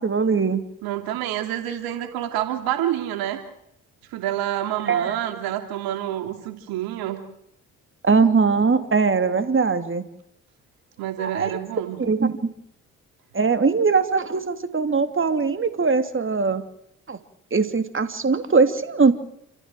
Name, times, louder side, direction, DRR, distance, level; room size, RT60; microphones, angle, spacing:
voice 1, 0.0-0.6 4.9-5.2 8.0-10.0 11.2-11.5 12.0-12.5 13.3-16.6 17.1-17.2 17.5-19.1, right 4 dB, 35° right, 9 dB, 2.9 m, -21 dB
voice 2, 0.8-3.4 4.1-7.2 11.0-12.0, right 12 dB, 90° right, 7 dB, 2.9 m, -28 dB
29.5 x 15.0 x 7.7 m, 0.75 s
supercardioid pair, 55°, 35 cm